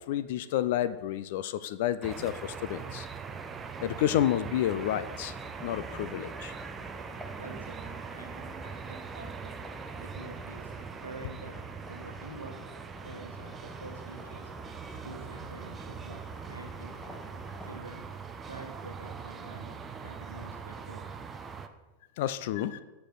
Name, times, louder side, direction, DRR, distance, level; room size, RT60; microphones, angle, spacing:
voice 1, 0.1-3.1 3.8-5.3 5.6-6.5 22.2-22.8, left 11 dB, 50° left, 14 dB, 0.3 m, -30 dB
sound 1, 2.0-21.7, right 5 dB, 20° right, 0.5 m, -42 dB
sound 2, 4.9-17.8, equal, 5° left, 0.8 m, -49 dB
voice 2, 7.0-9.6 10.0-10.7 11.0-11.6 11.9-12.7 13.0-14.5 15.0-17.3 17.6-18.0 18.4-21.1, right 2 dB, 80° right, 2 dB, 1.1 m, -47 dB
6.7 x 6.3 x 3.9 m, 1.1 s
figure-of-eight pair, 90°, 0 cm